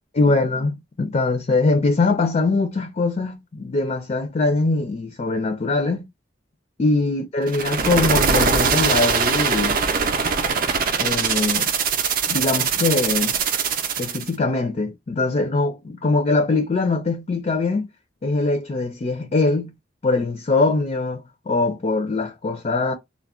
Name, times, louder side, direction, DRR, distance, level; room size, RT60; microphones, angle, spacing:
voice 1, 0.1-6.1 6.8-9.8 11.0-11.7 12.3-13.4 14.0-17.9 18.2-19.7 20.0-22.9, left 3 dB, 35° left, 0.4 m, -22 dB
sound 1, 7.5-14.3, right 5 dB, 50° right, 0.5 m, -22 dB
2.3 x 2.0 x 3.6 m
head